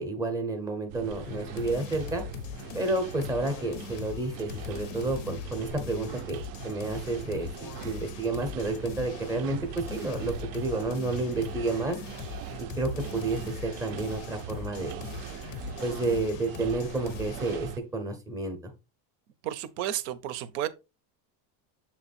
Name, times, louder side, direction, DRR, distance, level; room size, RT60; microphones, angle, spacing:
voice 1, 0.0-2.2 2.7-12.0 12.6-15.0 15.8-18.7, right 2 dB, 10° right, 0.6 m, -31 dB
sound 1, 0.9-17.8, right 11 dB, 60° right, 0.5 m, -41 dB
sound 2, 1.2-17.7, left 13 dB, 50° left, 0.5 m, -41 dB
voice 2, 19.4-20.7, right 12 dB, 80° right, 0.8 m, -32 dB
7.3 x 3.0 x 4.2 m
cardioid pair, 180°, 48 cm